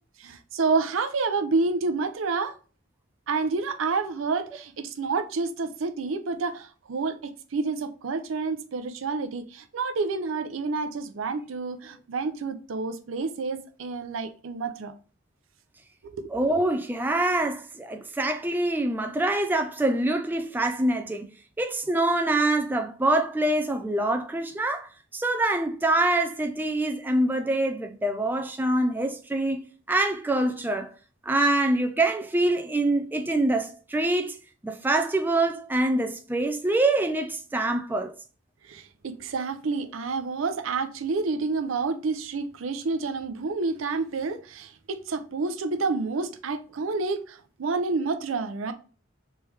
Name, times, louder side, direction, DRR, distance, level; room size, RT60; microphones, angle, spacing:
voice 1, 0.2-2.5 3.3-14.9 16.1-16.3 38.7-48.7, right 4 dB, 85° right, 0.5 m, -29 dB
voice 2, 16.3-21.3 21.6-24.9 25.1-30.9 31.3-34.3 34.6-38.1, right 2 dB, 10° right, 0.4 m, -25 dB
3.4 x 3.1 x 3.2 m
head